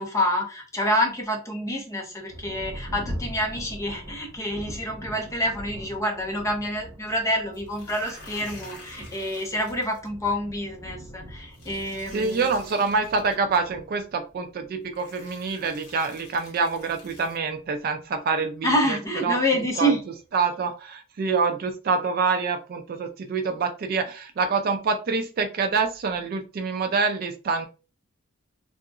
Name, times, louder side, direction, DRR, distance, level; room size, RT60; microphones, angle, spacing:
voice 1, 0.0-12.5 18.6-20.0, equal, 15° left, 2 dB, 0.6 m, -27 dB
Thunder, 2.3-18.3 19.1-19.2 19.7-20.2, equal, 85° right, 0.8 m, -42 dB
sound 1, 7.5-10.1 11.5-13.4 14.4-14.5 14.9-17.4, left 3 dB, 55° left, 1.1 m, -48 dB
voice 2, 12.1-18.7 19.2-19.9 20.3-27.7, right 4 dB, 45° right, 7 dB, 0.3 m, -26 dB
2.7 x 2.5 x 2.3 m, 0.33 s
head